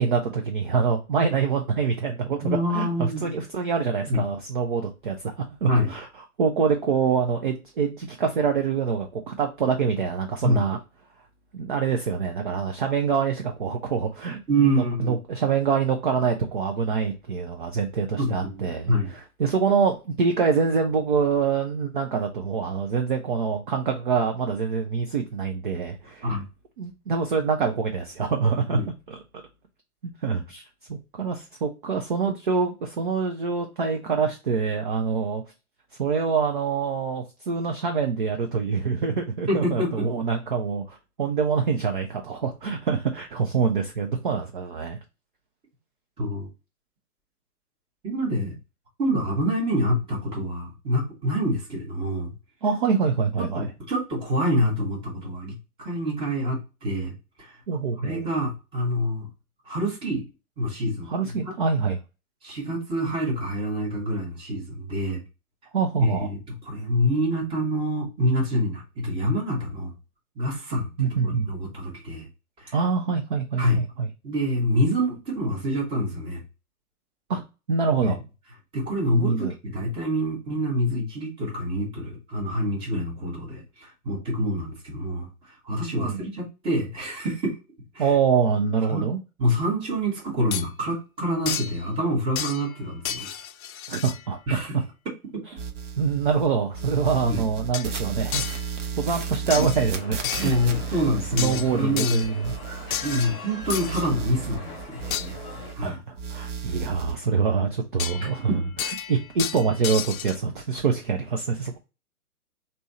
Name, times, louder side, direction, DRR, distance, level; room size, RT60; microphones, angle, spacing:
voice 1, 0.0-2.4 2.7-5.3 5.6-6.1 6.4-10.8 11.5-26.4 26.8-28.8 29.1-29.2 30.0-30.6 30.9-35.4 36.0-45.0 52.6-53.7 57.7-58.2 61.1-62.0 65.7-66.3 71.0-71.5 72.7-74.1 77.3-77.4 77.7-78.2 79.1-79.5 86.0-86.2 88.0-89.2 93.9-94.8 96.0-98.5 99.0-100.6 101.3-102.6 105.8-108.5 109.1-111.8, right 5 dB, 35° right, 4 dB, 0.5 m, -25 dB
voice 2, 2.4-3.3 4.1-4.2 5.7-5.9 10.4-10.6 14.5-15.2 18.2-19.1 26.2-26.4 28.7-28.9 39.5-40.1 46.2-46.5 48.0-48.5 49.0-52.3 53.5-57.6 58.0-59.3 59.7-60.2 60.6-61.1 61.4-61.5 62.4-65.2 66.0-66.4 66.7-69.9 70.4-70.9 71.2-72.3 72.6-72.8 73.6-73.8 74.2-76.4 78.0-78.2 78.7-87.6 87.9-88.1 88.9-89.1 89.4-93.3 94.5-94.8 97.3-97.4 100.4-102.2 103.0-105.4 105.7-106.0 108.2-108.6, equal, 10° right, 0 dB, 1.0 m, -26 dB
sound 1, 90.5-90.7 91.5-91.8 92.4-92.8 93.1-94.3 97.7-97.9 98.3-98.7 99.5-99.9 100.2-100.7 101.4-102.4 102.9-104.1 105.1-105.3 108.0-108.4 108.8-110.4, left 9 dB, 65° left, 0.5 m, -32 dB
sound 2, 95.6-96.5 96.7-103.3 103.6-105.9 106.2-107.2, right 6 dB, 55° right, 1.0 m, -34 dB
sound 3, 99.9-105.7, left 2 dB, 10° left, 1.1 m, -42 dB
3.3 x 2.8 x 4.1 m, 0.29 s
figure-of-eight pair, 130°, 45 cm